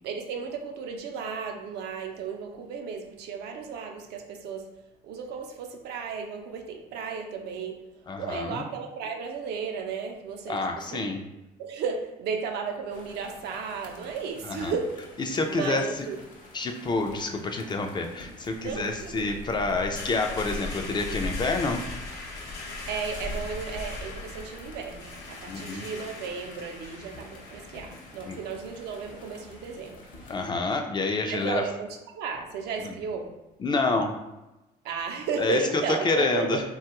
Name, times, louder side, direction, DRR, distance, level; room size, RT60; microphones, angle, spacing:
voice 1, 0.0-4.7 5.0-7.8 8.2-11.1 11.6-15.1 15.5-16.2 18.6-19.2 22.9-30.0 31.2-33.3 34.8-36.6, right 5 dB, 80° right, 3 dB, 0.5 m, -34 dB
voice 2, 8.1-8.6 10.5-11.2 14.6-14.7 15.3-15.8 16.5-21.8 25.5-25.9 28.3-28.4 30.3-31.6 32.8-33.0 33.6-34.2 35.4-35.6 36.0-36.6, left 3 dB, 25° left, 4 dB, 0.3 m, -28 dB
sound 1, 12.9-30.5, left 2 dB, 55° left, 0.8 m, -43 dB
sound 2, 19.2-30.8, left 3 dB, 85° left, 0.7 m, -42 dB
3.0 x 2.3 x 2.9 m, 1.0 s
cardioid pair, 110°, 17 cm